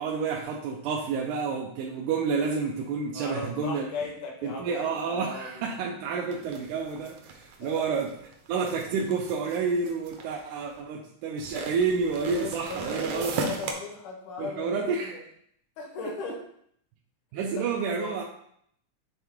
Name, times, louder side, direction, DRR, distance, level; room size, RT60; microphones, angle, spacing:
voice 1, 0.0-3.9 4.4-8.1 8.5-13.5 14.4-15.1 16.0-16.1 17.3-18.2, right 5 dB, 85° right, -1 dB, 2.1 m, -29 dB
voice 2, 3.1-5.7 7.6-7.9 12.3-15.2 15.8-16.4 18.0-18.2, left 3 dB, 80° left, -1 dB, 2.8 m, -37 dB
sound 1, 6.3-10.7 11.4-13.7, right 4 dB, 70° right, 1.6 m, -36 dB
8.0 x 3.5 x 3.6 m, 0.68 s
omnidirectional pair, 3.5 m